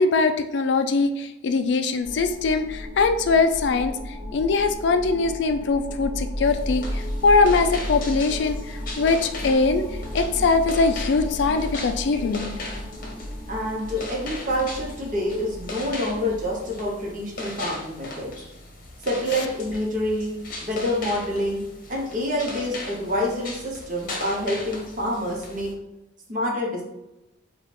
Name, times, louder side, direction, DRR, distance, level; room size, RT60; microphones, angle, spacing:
voice 1, 0.0-3.9 4.3-9.8 10.1-12.5, left 4 dB, 65° left, 8 dB, 0.3 m, -22 dB
sound 1, 2.0-16.6, equal, 5° right, 1.3 m, -34 dB
sound 2, 6.4-25.7, left 2 dB, 45° left, 0.8 m, -38 dB
voice 2, 13.5-18.3 19.0-20.3 20.6-21.6 21.9-25.7 26.3-26.8, equal, 40° right, -1 dB, 1.0 m, -27 dB
3.9 x 2.4 x 4.2 m, 0.94 s
head